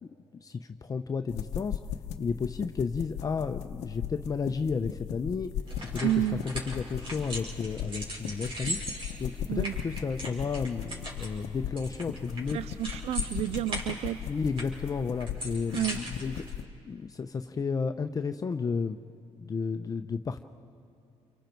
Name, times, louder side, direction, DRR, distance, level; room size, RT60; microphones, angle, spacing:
voice 1, 0.0-1.8 2.2-5.5 5.9-8.8 9.2-12.6 14.2-16.4 16.8-19.0 19.4-20.4, left 5 dB, 30° left, 7 dB, 0.7 m, -32 dB
sound 1, 1.3-16.6, left 10 dB, 90° left, 0.8 m, -38 dB
sound 2, 5.6-16.5, right 1 dB, 50° right, 5.3 m, -40 dB
voice 2, 6.0-6.4 9.5-9.7 12.5-14.2 15.7-16.0, right 13 dB, 65° right, 18 dB, 0.4 m, -30 dB
29.0 x 24.5 x 4.6 m, 2.6 s
cardioid pair, 100°, 11 cm